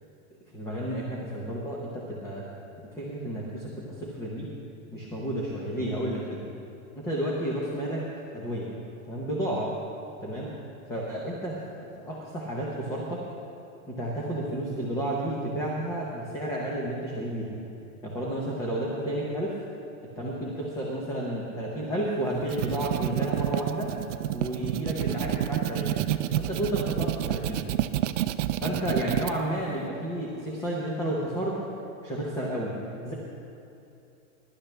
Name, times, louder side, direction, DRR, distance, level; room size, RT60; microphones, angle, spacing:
voice 1, 0.5-2.5 2.9-4.5 4.9-6.4 6.9-8.1 8.3-8.7 9.1-9.7 10.2-10.5 10.9-13.2 13.9-17.6 18.0-19.6 20.1-23.9 24.3-26.0 26.4-27.7 28.6-31.6 32.0-32.7 33.0-33.1, right 1 dB, 5° left, -4 dB, 0.7 m, -31 dB
sound 1, 22.3-29.3, right 12 dB, 55° right, 0.5 m, -29 dB
21.5 x 12.0 x 3.3 m, 2.8 s
supercardioid pair, 170°, 44 cm